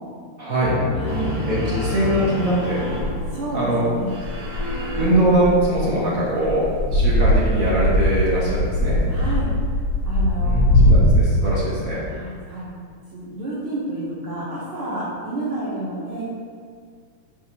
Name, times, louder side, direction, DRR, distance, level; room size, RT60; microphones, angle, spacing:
voice 1, 0.4-0.8 1.5-2.8 3.5-3.8 4.9-9.0 10.4-12.0, right 1 dB, 35° right, -7 dB, 1.6 m, -22 dB
sound 1, 0.7-4.1, left 3 dB, 85° left, 1.5 m, -29 dB
voice 2, 0.9-1.3 3.3-4.1 9.1-9.5 10.0-10.6 12.1-12.7 13.1-16.2, right 1 dB, 55° right, -8 dB, 1.7 m, -30 dB
sound 2, 1.1-9.3, equal, 90° right, 2.8 m, -33 dB
sound 3, 3.0-3.4 4.2-6.0 6.4-11.2, equal, 60° left, 1.3 m, -20 dB
10.5 x 4.6 x 3.0 m, 2.1 s
omnidirectional pair, 3.5 m